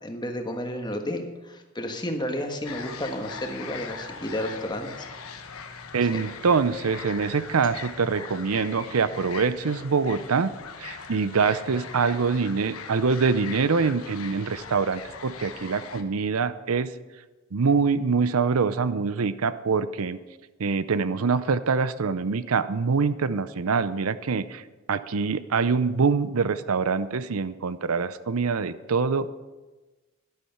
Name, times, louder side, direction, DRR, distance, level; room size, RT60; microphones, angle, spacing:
voice 1, 0.0-5.1 5.4-5.6, left 1 dB, 20° left, 4 dB, 1.4 m, -32 dB
sound 1, 2.6-16.0, left 5 dB, 85° left, 1.2 m, -40 dB
voice 2, 5.9-10.5 10.8-16.9 17.5-20.2 20.6-24.6 24.9-29.3, right 5 dB, 85° right, 14 dB, 0.6 m, -24 dB
12.0 x 11.5 x 5.8 m, 1.2 s
head